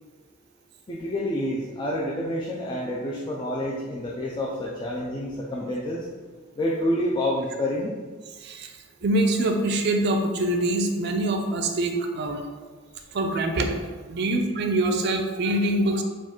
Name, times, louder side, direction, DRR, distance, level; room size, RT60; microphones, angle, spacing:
voice 1, 0.9-6.1 6.6-7.9, left 1 dB, 20° left, -3 dB, 0.4 m, -28 dB
voice 2, 9.0-12.4 13.1-13.7 14.1-16.0, right 1 dB, 55° right, 4 dB, 0.5 m, -24 dB
4.6 x 2.4 x 4.3 m, 1.4 s
head